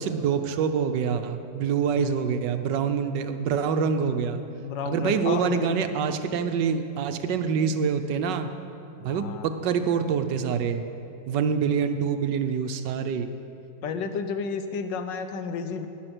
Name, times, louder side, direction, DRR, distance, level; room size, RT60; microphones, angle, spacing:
voice 1, 0.0-4.4 4.9-8.5 9.0-10.8 11.3-13.3, right 6 dB, 85° right, 8 dB, 1.4 m, -26 dB
voice 2, 4.6-5.7 9.1-9.5 11.7-11.8 13.8-15.9, left 5 dB, 85° left, 8 dB, 1.5 m, -31 dB
19.0 x 6.7 x 6.1 m, 2.8 s
omnidirectional pair, 1.9 m